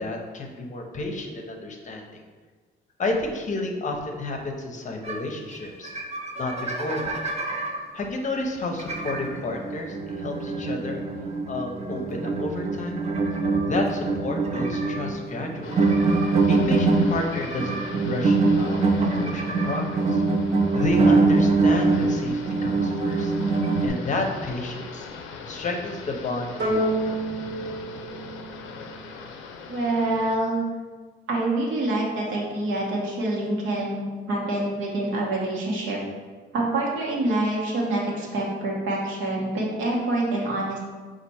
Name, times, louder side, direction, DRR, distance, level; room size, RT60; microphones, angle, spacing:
voice 1, 0.0-2.2 3.0-5.9 6.4-7.2 7.9-11.0 11.5-13.0 13.6-15.8 16.5-20.2 20.7-23.3 23.8-25.1 25.4-27.2, left 2 dB, 40° left, 2 dB, 0.7 m, -31 dB
sound 1, 5.0-5.2 5.5-5.6 5.8-7.8 8.8-23.9, right 3 dB, 35° right, 0.6 m, -24 dB
sound 2, 15.6-30.4, left 5 dB, 85° left, 0.5 m, -41 dB
sound 3, 26.6-29.2, right 1 dB, 60° right, 1.3 m, -28 dB
voice 2, 29.7-30.6 31.3-36.0 36.5-40.8, right 2 dB, 80° right, -3 dB, 1.2 m, -26 dB
4.3 x 2.5 x 4.2 m, 1.4 s
cardioid pair, 90°, 20 cm